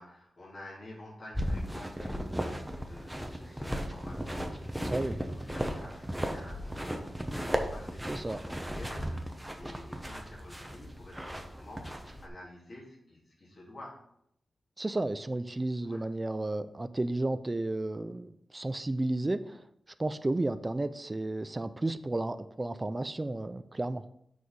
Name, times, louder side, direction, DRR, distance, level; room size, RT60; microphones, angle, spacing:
voice 1, 0.0-14.0 15.8-16.0, left 1 dB, 45° left, -6 dB, 3.2 m, -49 dB
sound 1, 1.3-12.3, equal, 5° right, 0.9 m, -36 dB
voice 2, 8.1-8.4 14.8-19.6 20.0-24.0, right 2 dB, 25° right, 12 dB, 0.4 m, -32 dB
6.4 x 4.8 x 5.3 m, 0.73 s
wide cardioid pair, 110°, 0 cm